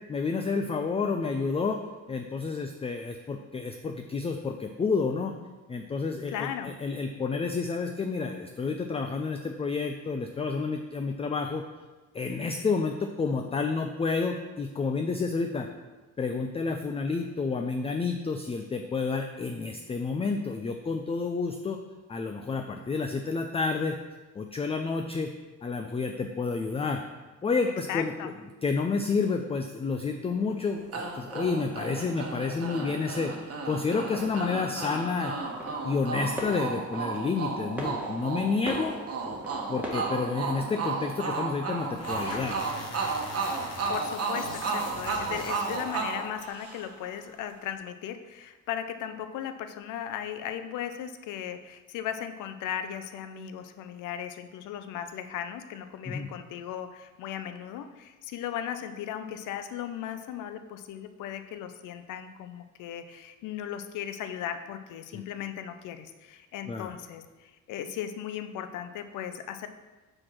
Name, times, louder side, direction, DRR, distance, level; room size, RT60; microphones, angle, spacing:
voice 1, 0.1-1.8 2.1-5.3 5.7-11.6 12.1-15.7 16.2-21.8 22.1-24.0 24.4-25.3 25.6-27.0 27.4-28.1 28.6-33.3 33.7-35.3 35.8-39.0 39.7-42.6 56.1-56.3 65.1-65.2 66.7-66.9, left 4 dB, 20° left, 5 dB, 0.4 m, -30 dB
voice 2, 6.3-6.7 27.9-28.3 43.9-69.7, left 9 dB, 85° left, 9 dB, 0.6 m, -37 dB
sound 1, 30.3-40.8, right 1 dB, 5° right, 1.6 m, -43 dB
sound 2, 30.9-47.1, right 4 dB, 50° right, 1.2 m, -33 dB
sound 3, 41.8-46.3, left 4 dB, 55° left, 1.1 m, -42 dB
4.8 x 4.3 x 5.9 m, 1.2 s
cardioid pair, 90°, 30 cm